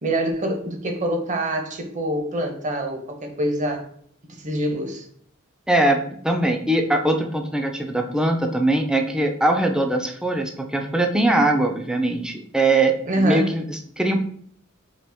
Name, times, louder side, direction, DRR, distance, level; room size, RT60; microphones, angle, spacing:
voice 1, 0.0-3.9 4.3-5.1 13.1-13.6, right 1 dB, 35° right, 4 dB, 0.7 m, -25 dB
voice 2, 5.7-14.2, right 2 dB, 5° right, 3 dB, 0.4 m, -21 dB
4.1 x 2.9 x 3.4 m, 0.62 s
head